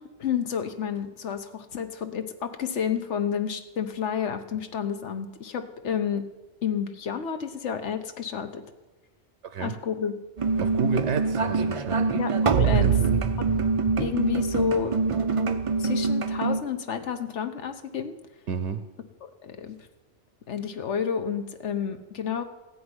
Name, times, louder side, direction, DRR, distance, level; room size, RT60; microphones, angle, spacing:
voice 1, 0.0-6.3 6.6-8.6 9.6-10.1 12.1-12.9 14.0-15.0 15.8-18.1 19.2-19.8 20.5-22.4, left 7 dB, 80° left, 8 dB, 1.3 m, -30 dB
voice 2, 9.4-9.7 10.6-12.1 12.6-13.2 18.5-18.8, right 5 dB, 80° right, 10 dB, 1.1 m, -30 dB
sound 1, 10.4-16.6, right 5 dB, 40° right, 0.5 m, -24 dB
15.5 x 5.4 x 9.6 m, 1.1 s
omnidirectional pair, 1.2 m